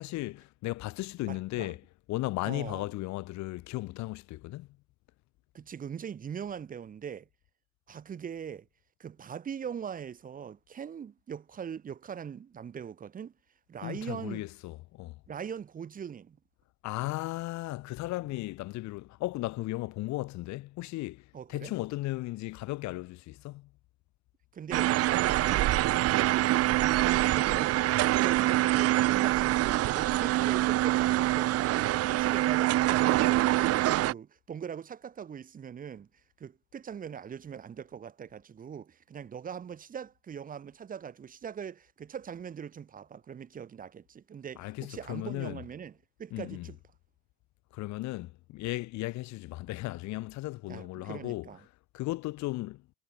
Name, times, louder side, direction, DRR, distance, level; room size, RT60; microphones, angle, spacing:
voice 1, 0.0-1.8 2.1-4.7 13.8-15.2 16.8-23.7 44.6-45.6 46.3-46.7 47.7-51.5 51.9-52.8, left 18 dB, 40° left, 4.8 m, -36 dB
voice 2, 1.3-1.7 2.4-2.9 5.5-7.3 7.9-8.7 9.0-13.3 13.7-14.5 15.3-16.4 17.0-17.1 21.3-21.7 24.5-25.8 26.6-27.8 28.2-36.1 36.4-45.9 46.2-46.8 50.7-51.6, right 7 dB, 20° right, 3.3 m, -41 dB
sound 1, 24.7-34.1, right 16 dB, 35° right, 2.3 m, -25 dB
supercardioid pair, 160°, 42 cm